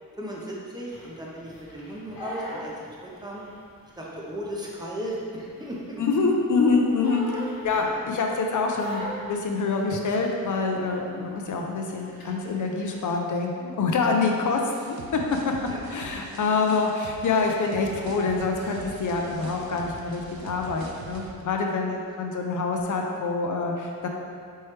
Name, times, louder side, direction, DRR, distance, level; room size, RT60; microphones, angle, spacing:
voice 1, 0.2-3.4 4.0-6.0 7.7-8.0 11.1-11.3 15.7-15.9 16.3-16.4, equal, 10° right, -4 dB, 0.6 m, -36 dB
Crying sobbing, 0.9-3.6 3.9-6.2 6.5-8.2 8.7-10.6 10.9-11.2 11.5-13.1, left 1 dB, 80° left, 1.1 m, -39 dB
voice 2, 6.0-15.2 15.9-24.1, left 4 dB, 60° left, 1 dB, 0.5 m, -26 dB
sound 1, 14.7-21.3, right 4 dB, 85° right, 0.5 m, -43 dB
4.4 x 3.1 x 3.2 m, 2.4 s
wide cardioid pair, 155°, 35 cm